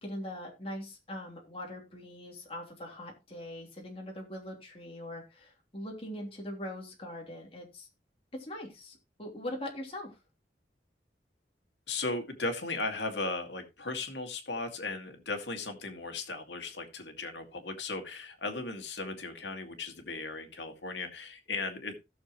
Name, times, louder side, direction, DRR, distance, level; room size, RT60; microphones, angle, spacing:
voice 1, 0.0-7.9 8.4-10.2, left 1 dB, 35° left, -1 dB, 3.1 m, -42 dB
voice 2, 11.9-22.0, left 3 dB, 85° left, 6 dB, 2.2 m, -36 dB
16.5 x 6.8 x 3.1 m, 0.26 s
head